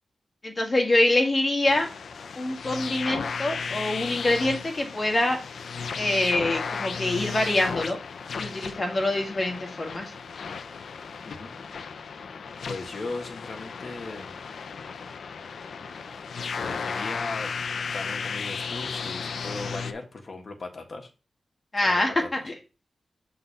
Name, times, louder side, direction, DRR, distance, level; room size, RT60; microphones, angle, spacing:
voice 1, 0.4-1.9 2.4-5.4 6.0-8.0 8.4-10.1 21.7-22.5, left 1 dB, 30° left, 3 dB, 1.8 m, -25 dB
sound 1, 1.7-19.9, left 5 dB, 80° left, 0.5 m, -34 dB
voice 2, 11.2-11.5 12.7-14.4 16.5-17.5 17.9-21.1 21.8-22.3, left 3 dB, 50° left, 3 dB, 1.5 m, -37 dB
6.7 x 3.9 x 5.5 m, 0.31 s
wide cardioid pair, 130°, 0 cm